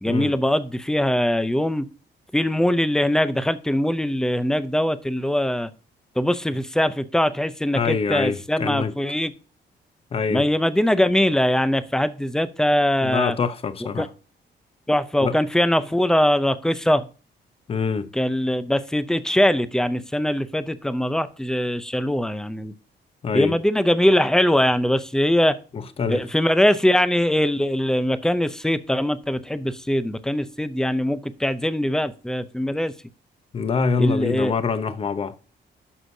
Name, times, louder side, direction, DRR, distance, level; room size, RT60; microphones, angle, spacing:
voice 1, 0.0-1.9 2.3-5.7 6.2-9.3 10.3-13.3 14.0-14.1 14.9-17.1 18.1-22.7 23.3-25.6 26.1-32.9 34.0-34.5, left 1 dB, 5° left, 0.5 m, -22 dB
voice 2, 7.7-8.9 10.1-10.4 13.0-14.1 15.2-15.4 17.7-18.1 23.2-23.5 25.7-26.2 33.5-35.4, left 5 dB, 30° left, 0.7 m, -25 dB
11.5 x 6.3 x 2.7 m
cardioid pair, 165°, 18 cm